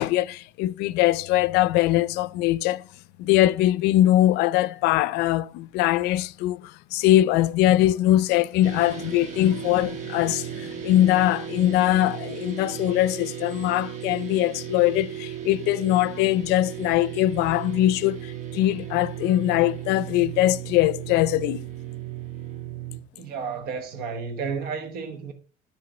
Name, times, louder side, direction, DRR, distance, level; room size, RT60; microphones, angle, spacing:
voice 1, 0.0-2.9 3.2-21.7, left 14 dB, 90° left, 0.4 m, -22 dB
sound 1, 8.6-23.0, right 11 dB, 45° right, 1.5 m, -36 dB
voice 2, 23.1-25.3, right 5 dB, 70° right, 1.2 m, -32 dB
10.5 x 3.7 x 4.9 m
cardioid pair, 150°, 17 cm